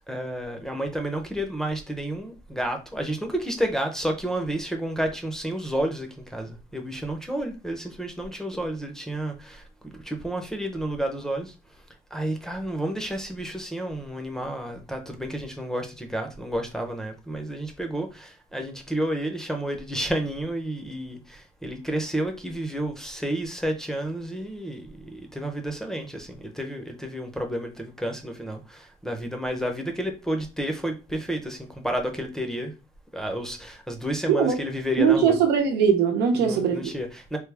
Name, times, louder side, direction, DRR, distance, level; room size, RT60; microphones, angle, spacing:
voice 1, 0.1-11.5 12.1-32.7 33.1-35.4 36.4-37.4, right 1 dB, 5° left, 0.7 m, -31 dB
voice 2, 35.0-36.9, right 7 dB, 80° right, 0.8 m, -21 dB
3.4 x 2.1 x 3.4 m
cardioid pair, 110°, 17 cm